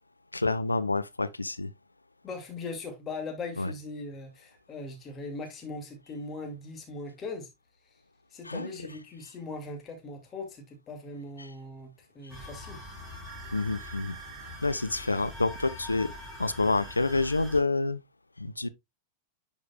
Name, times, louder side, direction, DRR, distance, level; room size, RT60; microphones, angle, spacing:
voice 1, 0.3-1.7 3.6-3.7 8.4-8.7 11.4-11.5 13.5-14.2 14.6-16.1 16.4-18.0 18.4-18.7, left 3 dB, 80° left, 0.5 m, -28 dB
voice 2, 2.2-7.5 8.3-12.8, left 3 dB, 25° left, 2.2 m, -40 dB
sound 1, 12.3-17.6, left 1 dB, 10° right, 3.7 m, -44 dB
sound 2, 12.9-13.0 13.3-14.6 15.5-15.6, right 13 dB, 50° right, 0.5 m, -48 dB
10.5 x 5.0 x 2.3 m
figure-of-eight pair, 90°, 0 cm